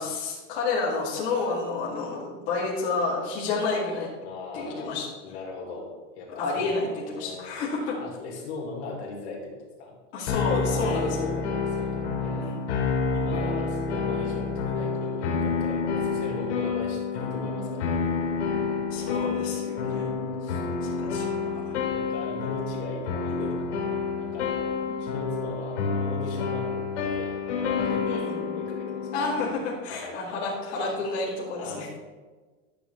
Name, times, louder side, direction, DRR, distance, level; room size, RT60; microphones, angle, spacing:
voice 1, 0.0-4.1 4.5-5.1 6.3-8.0 10.1-11.2 12.3-12.7 18.9-20.1 20.5-21.8 24.8-25.0 28.0-28.4 29.1-31.9, left 3 dB, 35° left, -8 dB, 2.4 m, -30 dB
voice 2, 4.2-5.0 5.2-6.7 7.1-7.5 8.0-9.9 10.6-12.5 13.1-18.1 18.5-20.7 21.9-29.5 29.9-30.2 30.8-31.0 31.5-31.9, left 3 dB, 60° left, -3 dB, 3.1 m, -39 dB
sound 1, 10.3-29.5, left 5 dB, 85° left, 2.7 m, -29 dB
12.5 x 6.9 x 3.4 m, 1.3 s
supercardioid pair, 175°, 36 cm